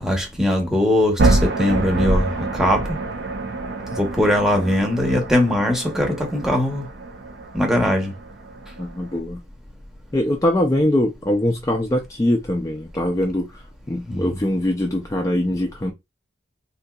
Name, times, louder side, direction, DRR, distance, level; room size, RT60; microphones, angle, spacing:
voice 1, 0.0-3.0 3.9-6.8 7.5-8.1 14.1-14.4, left 1 dB, 5° right, 0.7 m, -21 dB
sound 1, 1.2-9.2, right 2 dB, 55° right, 0.5 m, -26 dB
voice 2, 8.8-9.4 10.1-13.6 13.9-15.9, left 1 dB, 15° left, 0.3 m, -22 dB
3.8 x 2.7 x 2.2 m
head